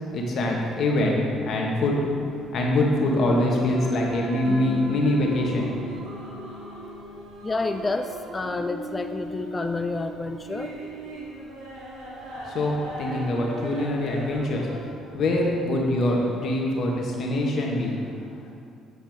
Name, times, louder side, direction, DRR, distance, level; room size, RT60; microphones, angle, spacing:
voice 1, 0.1-2.1 2.5-5.7 12.4-14.7 15.1-18.0, left 1 dB, 55° left, -1 dB, 1.4 m, -24 dB
sound 1, 2.2-14.8, right 2 dB, 70° right, 2.0 m, -39 dB
sound 2, 4.5-7.8, left 6 dB, ahead, 1.7 m, -39 dB
voice 2, 7.4-10.8, left 3 dB, 25° left, 7 dB, 0.4 m, -29 dB
8.0 x 7.0 x 3.6 m, 2.4 s
hypercardioid pair, 55°, 0 cm